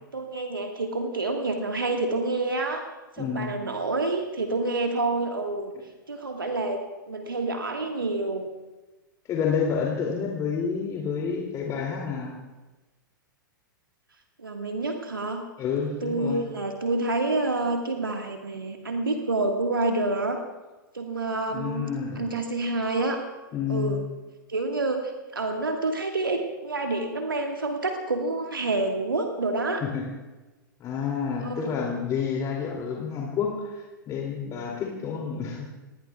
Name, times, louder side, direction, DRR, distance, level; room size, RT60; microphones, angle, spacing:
voice 1, 0.1-2.8 3.1-5.7 6.1-6.8 7.1-8.5 14.4-15.4 16.0-20.4 20.9-23.2 23.7-24.0 24.5-29.8 31.4-31.7, right 2 dB, 80° right, 3 dB, 1.6 m, -28 dB
voice 2, 3.2-3.6 9.3-12.3 15.6-16.4 21.5-22.3 23.5-24.0 29.8-30.1 30.8-35.7, left 6 dB, 30° left, -1 dB, 2.7 m, -29 dB
28.5 x 20.0 x 2.4 m, 1.2 s
figure-of-eight pair, 100°, 11 cm